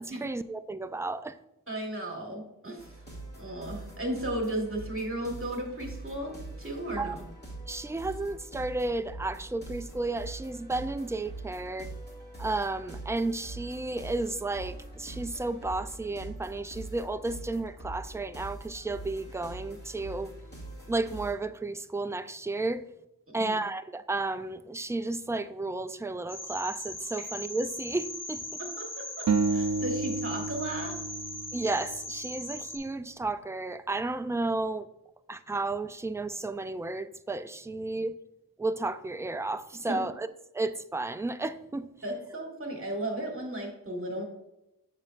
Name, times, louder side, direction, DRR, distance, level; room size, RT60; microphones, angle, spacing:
voice 1, 0.0-1.4 7.0-7.2 7.7-11.9 12.4-20.3 20.9-22.8 23.3-28.6 31.5-34.9 35.3-38.2 38.6-40.3 40.5-41.9, right 2 dB, 10° right, 0.3 m, -33 dB
voice 2, 1.7-3.0 3.4-7.3 23.4-23.5 28.6-31.0 39.9-40.0 42.0-44.2, right 1 dB, 40° right, 1.7 m, -35 dB
sound 1, 2.8-21.3, right 2 dB, 30° left, 2.1 m, -43 dB
sound 2, 26.3-32.8, left 1 dB, 50° left, 2.4 m, -39 dB
sound 3, 29.3-32.5, right 4 dB, 60° right, 0.6 m, -30 dB
7.2 x 6.4 x 2.5 m
wide cardioid pair, 55°, 34 cm